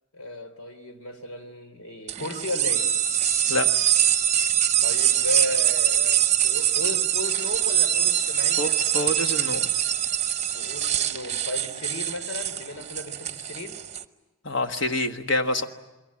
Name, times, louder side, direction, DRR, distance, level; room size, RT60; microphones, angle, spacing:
voice 1, 0.1-2.9 4.8-8.8 10.5-13.8, left 2 dB, 85° left, 8 dB, 3.5 m, -35 dB
sound 1, 2.1-14.0, right 10 dB, 30° right, 0.9 m, -24 dB
voice 2, 8.9-9.7 14.4-15.7, left 1 dB, 55° left, 6 dB, 1.6 m, -26 dB
27.5 x 23.0 x 8.7 m, 1.1 s
head